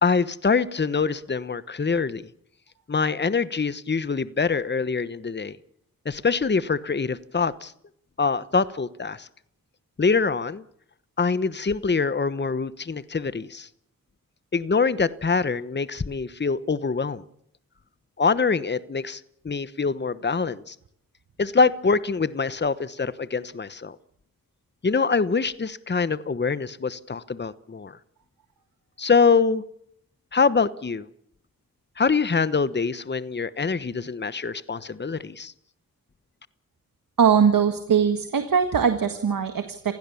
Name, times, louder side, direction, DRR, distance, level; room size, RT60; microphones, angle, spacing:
voice 1, 0.0-2.3 2.9-5.6 6.0-7.7 8.2-9.3 10.0-10.6 11.2-13.7 14.5-17.2 18.2-20.7 21.4-23.9 24.8-28.0 29.0-29.6 30.3-31.1 32.0-35.5, left 5 dB, 30° left, 15 dB, 1.1 m, -24 dB
voice 2, 37.2-39.9, right 7 dB, 70° right, 8 dB, 1.7 m, -21 dB
27.5 x 16.0 x 7.1 m, 0.72 s
cardioid pair, 45°, 35 cm